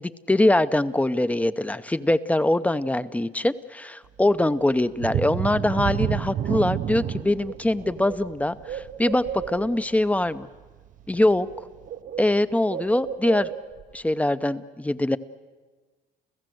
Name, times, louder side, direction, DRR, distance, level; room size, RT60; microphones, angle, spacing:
voice 1, 0.0-10.5 11.1-11.5 12.2-13.5 13.9-15.2, left 1 dB, 10° left, 13 dB, 0.6 m, -23 dB
sound 1, 5.0-10.4 10.9-11.0 11.5-11.6, right 11 dB, 50° right, 0.7 m, -29 dB
Bird, 7.0-7.1 7.4-9.9 11.0-11.2 11.5-13.9, right 9 dB, 65° right, 1.4 m, -36 dB
29.5 x 15.0 x 7.8 m, 1.4 s
cardioid pair, 110°, 17 cm